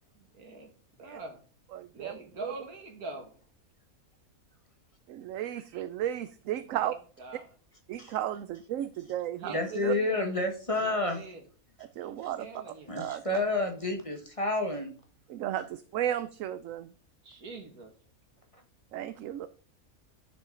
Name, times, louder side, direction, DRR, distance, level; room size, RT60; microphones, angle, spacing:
voice 1, 0.2-0.7 1.0-1.4 1.9-3.3 6.7-7.5 9.4-10.2 10.8-11.4 12.4-12.9 17.2-17.9, right 3 dB, 90° right, 3 dB, 2.3 m, -43 dB
voice 2, 1.7-2.5 5.1-7.0 7.9-10.0 11.8-12.6 12.9-13.2 15.3-16.9 18.9-19.5, right 11 dB, 70° right, 13 dB, 0.9 m, -34 dB
voice 3, 9.5-11.2 12.9-14.9, left 2 dB, 25° left, 3 dB, 1.3 m, -30 dB
10.5 x 6.3 x 3.8 m, 0.40 s
omnidirectional pair, 1.5 m